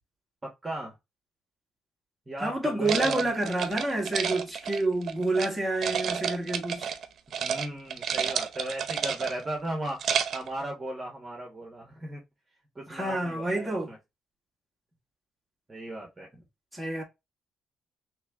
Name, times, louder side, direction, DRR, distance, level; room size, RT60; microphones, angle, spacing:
voice 1, 0.4-0.9 2.3-3.3 7.4-10.0 10.3-12.2 12.7-14.0 15.7-16.5, right 1 dB, 20° right, 1.4 m, -36 dB
voice 2, 2.4-6.9 12.9-13.9 16.7-17.0, right 2 dB, ahead, 1.8 m, -28 dB
sound 1, 2.9-5.5 5.8-7.1 7.3-7.7 7.9-9.5 9.9-10.5, right 7 dB, 60° right, 0.6 m, -30 dB
3.3 x 3.2 x 3.5 m
cardioid pair, 90°, 0 cm